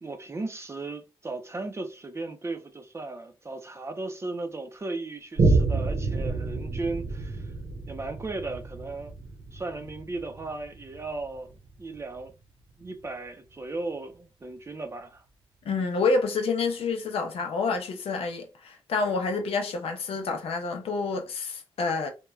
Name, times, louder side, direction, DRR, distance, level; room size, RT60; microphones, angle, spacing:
voice 1, 0.0-7.5 7.9-9.1 9.5-11.5 11.8-12.3 12.8-15.2, right 3 dB, 30° right, 0.5 m, -36 dB
Boom, 5.4-12.3 12.8-12.9, right 3 dB, 65° right, 0.8 m, -29 dB
voice 2, 15.6-22.1, left 4 dB, 85° left, 0.6 m, -28 dB
3.1 x 2.2 x 2.3 m
cardioid pair, 85°, 10 cm